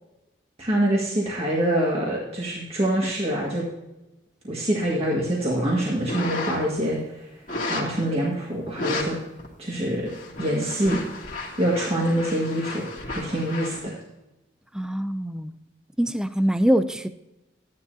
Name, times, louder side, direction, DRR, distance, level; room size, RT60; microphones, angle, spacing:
voice 1, 0.6-3.7 4.5-7.0 7.7-9.2 9.6-10.1 10.4-11.0 11.6-14.0, right 1 dB, 35° right, -4 dB, 1.8 m, -25 dB
sound 1, 6.1-6.8 7.5-8.0 8.7-9.1 9.4-9.5 10.0-13.8, left 2 dB, 45° left, 2.3 m, -33 dB
voice 2, 14.7-15.5 16.0-17.1, equal, 5° right, 11 dB, 0.4 m, -23 dB
13.5 x 10.5 x 2.8 m, 0.97 s
head